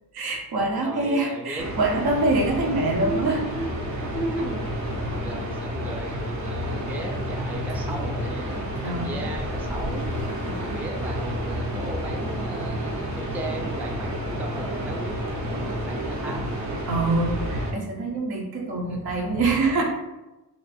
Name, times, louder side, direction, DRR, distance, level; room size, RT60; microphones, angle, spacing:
voice 1, 0.1-3.4 8.8-9.1 10.4-10.6 16.9-19.8, right 2 dB, 70° right, 0 dB, 1.0 m, -25 dB
voice 2, 0.7-1.9 2.8-4.6 5.2-10.1 10.6-16.8 18.8-19.0, right 1 dB, 5° right, 1 dB, 0.4 m, -36 dB
sound 1, 1.6-17.7, equal, 45° right, 0.8 m, -30 dB
3.0 x 2.5 x 4.2 m, 1.0 s
cardioid pair, 110°, 39 cm